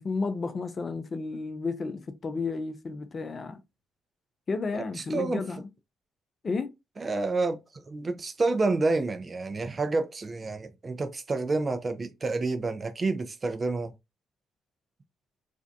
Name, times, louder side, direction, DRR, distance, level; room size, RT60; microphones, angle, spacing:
voice 1, 0.0-3.6 4.5-5.7 6.4-6.7, left 4 dB, 40° left, 0.5 m, -32 dB
voice 2, 5.1-5.4 7.0-7.6 7.9-13.9, right 3 dB, 35° right, 0.5 m, -29 dB
2.5 x 2.1 x 2.6 m
hypercardioid pair, 55°, 0 cm